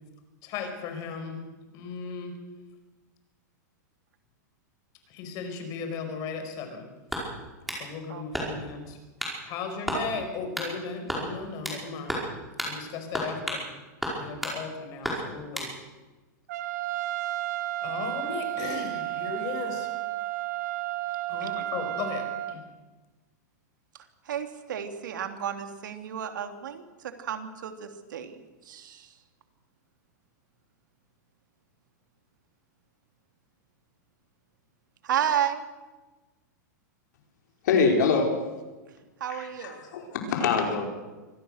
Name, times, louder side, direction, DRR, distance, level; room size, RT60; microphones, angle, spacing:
voice 1, 0.4-1.4 1.7-2.3 5.1-6.8 7.7-9.0 9.4-12.2 12.6-13.6 14.1-15.7 17.8-19.9 21.3-22.6, left 5 dB, 40° left, 6 dB, 5.0 m, -36 dB
sound 1, 7.1-7.8 8.3-8.7 9.2-9.4 9.9-10.0 10.5-10.7 11.1-11.8 12.1-12.3 12.6-12.7 13.1-13.7 14.0-14.6 15.0-15.7, equal, ahead, 5.2 m, -32 dB
voice 2, 8.1-8.5 9.9-10.0 21.4-21.5 24.3-29.1 35.0-35.6 39.2-39.8, right 9 dB, 85° right, 6 dB, 2.9 m, -32 dB
Trumpet, 16.5-22.6, right 16 dB, 65° right, 1.5 m, -32 dB
voice 3, 37.6-38.3 39.3-40.9, left 5 dB, 70° left, 2 dB, 5.0 m, -24 dB
24.5 x 18.0 x 6.6 m, 1.2 s
supercardioid pair, 150°, 10 cm